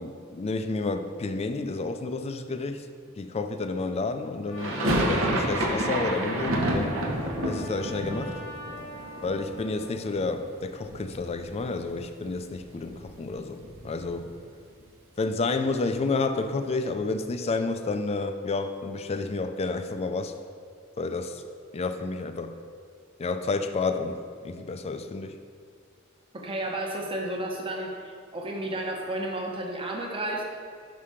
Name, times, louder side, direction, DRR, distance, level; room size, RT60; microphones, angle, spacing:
voice 1, 0.0-2.9 3.2-7.0 7.4-8.4 9.2-14.3 15.2-20.3 21.0-21.4 21.7-22.6 23.2-25.4, left 3 dB, 30° left, 8 dB, 0.4 m, -30 dB
Trumpet, 4.5-9.9, left 1 dB, 85° left, 1.3 m, -43 dB
sound 1, 4.6-10.5 10.8-11.6 11.9-12.0 12.3-14.4, right 1 dB, 70° right, 0.9 m, -30 dB
voice 2, 26.3-30.4, right 1 dB, 25° right, 0 dB, 0.9 m, -32 dB
5.7 x 5.5 x 4.9 m, 2.2 s
head